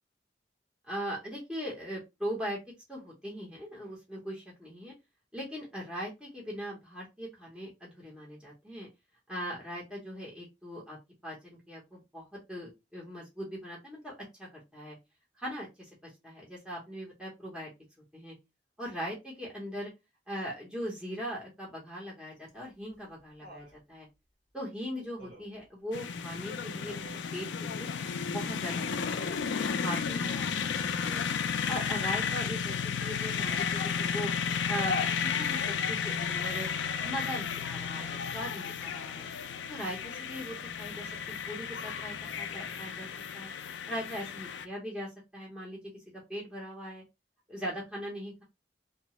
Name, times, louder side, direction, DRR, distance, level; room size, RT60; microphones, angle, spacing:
voice 1, 0.9-2.6 2.9-4.9 5.3-8.9 9.3-11.0 11.2-15.0 15.4-17.7 18.1-18.3 18.8-19.9 20.3-24.1 24.5-27.0 27.3-27.9 28.3-28.8 29.1-30.5 31.0-31.2 31.7-34.3 34.7-36.7 37.0-39.3 39.7-43.1 43.3-43.5 43.9-45.8 46.1-47.0 47.5-48.4, equal, 5° right, -5 dB, 0.8 m, -40 dB
Laughter, 22.5-23.8 25.2-25.7 26.8-27.3 28.9-29.4 31.9-32.4 33.4-33.7 36.1-36.6 38.0-38.6 40.0-40.1, right 2 dB, 55° right, 1.2 m, -53 dB
sound 1, 25.9-44.7, left 6 dB, 80° left, 0.4 m, -33 dB
2.8 x 2.1 x 2.9 m, 0.22 s
head